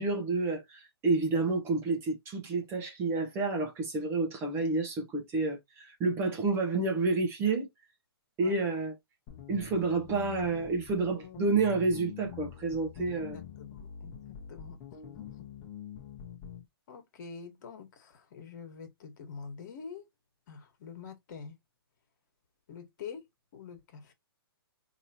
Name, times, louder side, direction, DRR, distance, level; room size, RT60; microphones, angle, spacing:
voice 1, 0.0-7.7 8.4-9.0 9.5-13.4, right 3 dB, 20° right, 1.0 m, -29 dB
sound 1, 9.3-16.6, left 8 dB, 25° left, 1.2 m, -45 dB
voice 2, 13.3-15.3 16.9-20.1 20.5-21.6 22.7-23.3 23.5-24.1, left 6 dB, 45° left, 1.6 m, -46 dB
4.7 x 3.0 x 2.9 m
hypercardioid pair, 155°, 13 cm